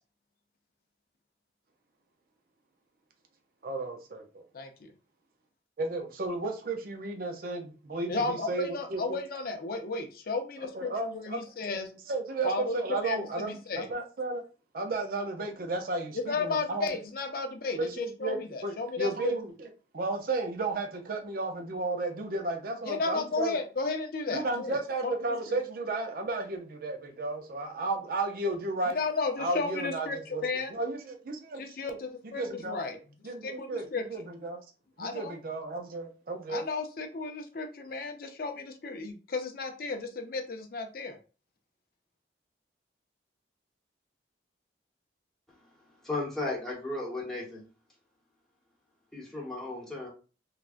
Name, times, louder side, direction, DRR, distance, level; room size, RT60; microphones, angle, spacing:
voice 1, 3.6-4.5 5.8-9.2 10.7-11.4 12.1-14.4 14.7-17.0 17.7-23.6 24.3-29.0 29.4-32.0 32.2-32.8 33.2-34.7 35.0-36.6, right 2 dB, 50° right, 0.5 m, -33 dB
voice 2, 4.5-4.9 8.1-11.9 12.4-13.9 16.1-19.3 22.8-25.1 28.9-30.7 31.6-33.0 33.4-34.0 35.0-35.3 36.5-41.2, left 3 dB, 55° left, 0.5 m, -33 dB
voice 3, 46.0-47.7 49.1-50.1, left 2 dB, 5° left, 1.0 m, -35 dB
3.3 x 2.3 x 2.4 m
head